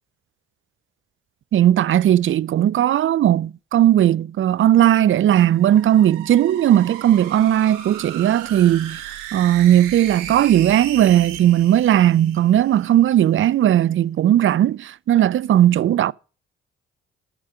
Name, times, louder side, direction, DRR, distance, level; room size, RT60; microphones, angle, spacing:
voice 1, 1.5-9.0 9.3-16.1, right 11 dB, 40° right, 0.4 m, -17 dB
sound 1, 5.4-12.9, right 10 dB, 85° right, 1.3 m, -36 dB
13.0 x 5.1 x 6.9 m
hypercardioid pair, 50°, 31 cm